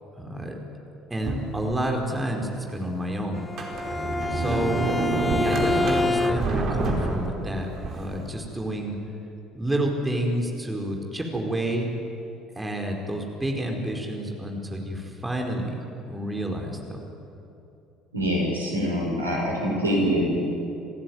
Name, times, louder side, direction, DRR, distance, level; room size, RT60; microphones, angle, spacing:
voice 1, 0.2-0.6 1.1-3.5 4.3-4.9 5.3-9.0 9.5-11.9 12.6-15.8 16.1-17.1, right 1 dB, 15° right, 1 dB, 4.8 m, -29 dB
Sliding door, 1.2-2.1 2.7-2.8 3.4-8.2, right 2 dB, 45° right, 4.7 m, -28 dB
Bowed string instrument, 3.3-6.7, left 3 dB, 15° left, 0.8 m, -28 dB
voice 2, 18.1-20.3, equal, 85° right, -1 dB, 5.5 m, -24 dB
28.5 x 15.5 x 9.4 m, 2.8 s
figure-of-eight pair, 55°, 0 cm